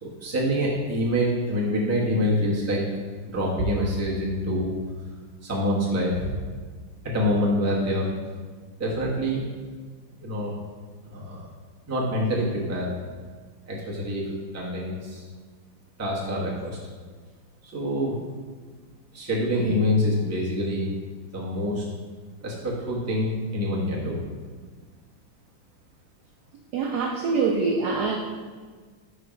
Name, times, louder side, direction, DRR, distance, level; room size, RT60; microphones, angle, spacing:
voice 1, 0.0-2.9 3.2-4.7 5.4-6.4 7.0-8.1 8.8-9.4 10.2-10.5 11.1-11.5 11.9-12.9 13.7-15.3 16.0-16.8 17.6-18.2 19.1-20.9 21.3-21.8 22.4-24.2, equal, 15° right, -5 dB, 0.6 m, -26 dB
voice 2, 26.7-28.2, right 4 dB, 75° right, 1 dB, 0.9 m, -24 dB
5.1 x 4.6 x 5.0 m, 1.5 s
omnidirectional pair, 2.4 m